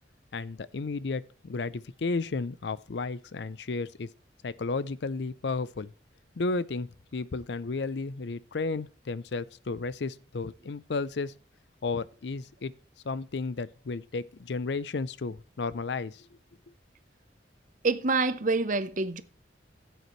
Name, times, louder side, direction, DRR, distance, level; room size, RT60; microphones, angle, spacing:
voice 1, 0.3-4.1 4.4-5.9 6.4-11.3 11.8-12.7 13.0-16.3, left 3 dB, 70° left, 0.5 m, -33 dB
voice 2, 17.8-19.2, right 3 dB, 45° right, 0.8 m, -26 dB
15.5 x 8.0 x 3.1 m
head